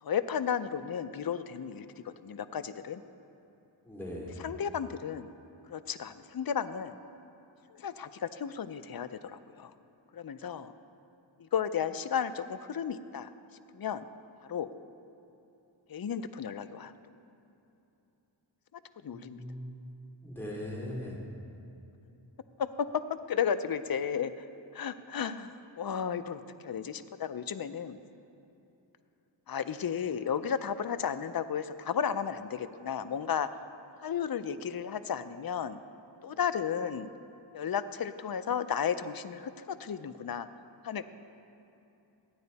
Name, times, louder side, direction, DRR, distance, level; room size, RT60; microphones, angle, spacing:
voice 1, 0.0-3.0 4.4-5.3 5.7-7.0 7.7-9.7 10.1-10.7 11.4-13.3 13.7-14.0 14.5-14.7 15.9-16.9 19.0-19.4 22.6-23.0 23.3-24.3 24.7-28.0 29.5-33.5 34.0-35.8 36.2-37.1 37.5-40.5 40.8-41.0, left 7 dB, 50° left, 11 dB, 0.5 m, -33 dB
voice 2, 3.8-4.4 19.1-19.9 20.2-21.2, left 1 dB, 5° left, -4 dB, 2.9 m, -40 dB
15.0 x 9.6 x 4.1 m, 2.9 s
wide cardioid pair, 45°, 47 cm